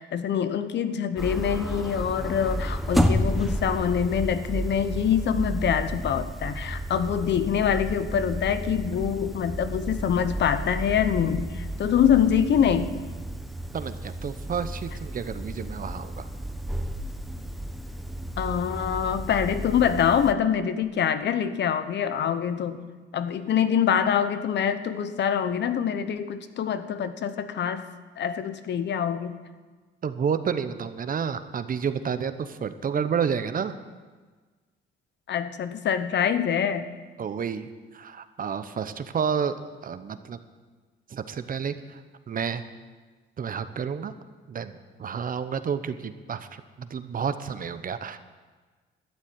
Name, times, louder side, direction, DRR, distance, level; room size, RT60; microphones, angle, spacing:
voice 1, 0.0-12.9 18.4-22.8 23.1-27.8 28.2-29.4 35.3-36.8, left 8 dB, 60° left, 11 dB, 0.9 m, -25 dB
sound 1, 1.2-20.3, equal, ahead, 1.0 m, -32 dB
voice 2, 13.7-16.3 30.0-33.7 37.2-39.5 39.8-40.4 41.1-42.0 42.3-42.6 43.4-44.1 44.5-48.2, right 7 dB, 45° right, 11 dB, 0.9 m, -30 dB
12.5 x 7.3 x 9.4 m, 1.4 s
cardioid pair, 90°, 20 cm